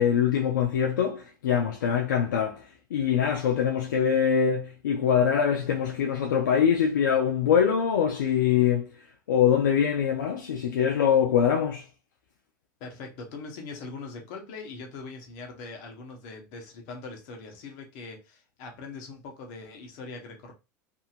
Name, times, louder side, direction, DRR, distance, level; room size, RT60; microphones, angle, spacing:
voice 1, 0.0-9.0 9.3-11.9, left 8 dB, 85° left, 0.5 m, -24 dB
voice 2, 12.8-20.5, left 4 dB, 65° left, 1.0 m, -41 dB
2.7 x 2.7 x 2.4 m
hypercardioid pair, 90°, 10 cm